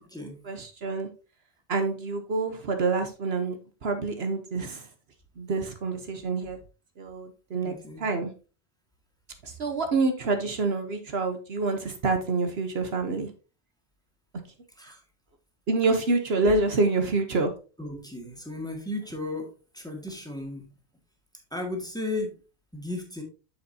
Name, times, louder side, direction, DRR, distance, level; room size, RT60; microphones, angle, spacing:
voice 1, 0.4-1.1 1.7-4.9 5.4-6.6 7.0-8.3 9.4-13.3 15.7-17.5, right 3 dB, 65° right, 6 dB, 1.2 m, -27 dB
voice 2, 7.6-8.0 14.8-15.0 17.8-20.7 21.5-22.4 22.7-23.2, left 2 dB, 5° left, 1 dB, 1.8 m, -35 dB
8.4 x 7.0 x 2.8 m, 0.33 s
omnidirectional pair, 1.1 m